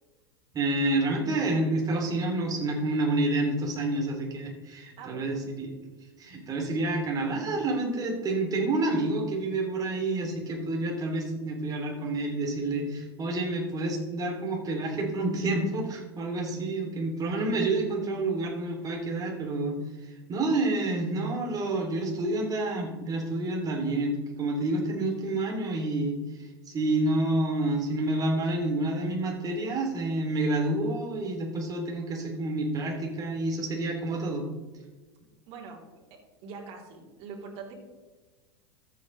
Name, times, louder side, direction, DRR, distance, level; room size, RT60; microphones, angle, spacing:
voice 1, 0.5-5.7 6.2-34.5, right 2 dB, 25° right, 0 dB, 2.9 m, -29 dB
voice 2, 5.0-5.4 35.5-35.8 36.1-37.7, right 5 dB, 50° right, -2 dB, 3.3 m, -43 dB
13.5 x 8.0 x 3.2 m, 1.3 s
hypercardioid pair, 110°, 14 cm